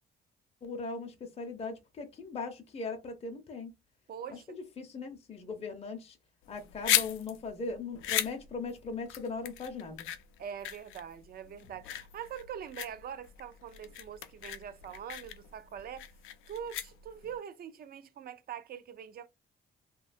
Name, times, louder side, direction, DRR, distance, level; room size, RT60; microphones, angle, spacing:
voice 1, 0.6-3.7 4.3-4.4 4.8-6.2 6.5-10.1, left 4 dB, 30° left, 0.6 m, -39 dB
voice 2, 4.1-4.6 10.4-16.1 16.5-19.3, right 8 dB, 50° right, 0.4 m, -43 dB
sound 1, 6.4-17.4, left 12 dB, 85° left, 0.4 m, -36 dB
2.7 x 2.2 x 2.4 m
cardioid pair, 90°, 20 cm